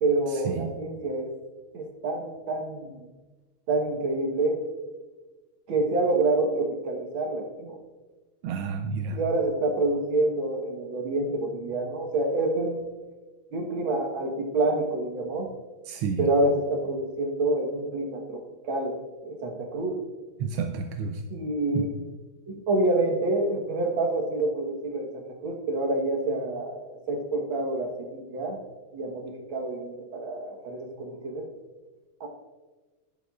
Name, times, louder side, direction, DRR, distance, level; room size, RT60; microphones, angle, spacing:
voice 1, 0.0-1.3 1.7-3.1 3.7-4.6 5.7-7.8 9.1-12.8 13.5-15.5 16.2-20.0 21.3-21.9 22.5-28.6 28.9-31.5 32.2-32.3, right 2 dB, 70° right, 2 dB, 2.0 m, -27 dB
voice 2, 8.4-9.2 15.9-16.3 20.4-21.2 21.7-21.9, right 6 dB, 85° right, 5 dB, 1.5 m, -30 dB
12.0 x 11.0 x 2.4 m, 1.3 s
omnidirectional pair, 2.4 m